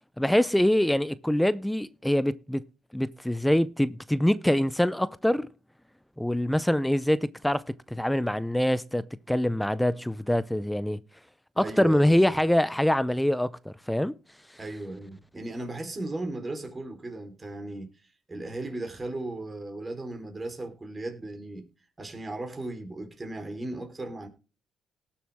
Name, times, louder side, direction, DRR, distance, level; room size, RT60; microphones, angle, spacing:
voice 1, 0.2-2.7 2.9-5.5 6.2-7.6 7.9-11.0 11.6-14.1, left 1 dB, 5° left, 0.6 m, -24 dB
voice 2, 11.6-12.4 14.6-21.7 22.0-24.3, right 2 dB, 25° right, 3.9 m, -36 dB
18.5 x 7.1 x 3.6 m
cardioid pair, 90°, 0 cm